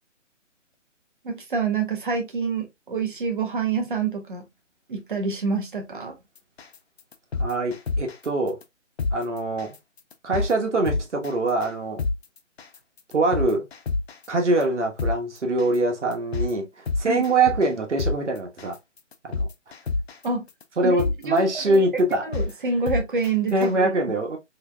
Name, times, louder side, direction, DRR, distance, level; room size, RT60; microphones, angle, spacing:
voice 1, 1.2-4.5 4.9-6.2 17.1-17.2 20.2-20.5 20.8-23.9, right 4 dB, 40° right, 0.8 m, -27 dB
sound 1, 6.6-6.7 7.1-8.2 8.6-8.7 9.0-9.1 9.6-9.8 10.1-10.5 10.9-11.3 11.6-11.7 12.0-12.1 12.6-12.8 13.1-14.2 14.6-14.7 15.0-15.1 15.6-15.8 16.1-16.5 16.9-17.7 18.0-18.1 18.6-18.7 19.1-20.2 20.6-20.7 21.0-21.1 21.6-21.7 22.1-22.5 22.9-23.3 23.6-23.7, left 3 dB, 55° left, 0.5 m, -26 dB
voice 2, 7.4-8.6 9.1-9.8 10.2-12.0 13.1-13.7 14.3-18.8 19.2-19.5 20.8-22.2 23.5-24.4, right 2 dB, 65° right, 1.2 m, -23 dB
3.2 x 3.2 x 2.2 m
figure-of-eight pair, 155°, 38 cm